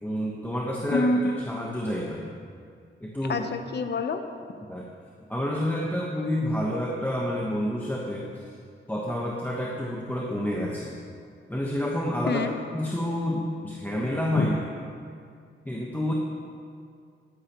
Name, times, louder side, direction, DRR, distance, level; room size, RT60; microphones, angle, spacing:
voice 1, 0.0-1.1 1.4-2.3 3.0-3.4 4.7-4.9 5.3-8.4 8.9-11.0 11.5-12.4 12.7-14.5 15.6-16.1, left 1 dB, 10° left, -3 dB, 1.2 m, -29 dB
voice 2, 0.9-1.4 3.3-4.2 12.3-12.5 14.3-14.5, left 2 dB, 55° left, 8 dB, 0.9 m, -26 dB
13.0 x 10.5 x 3.1 m, 2.2 s
cardioid pair, 65°, 21 cm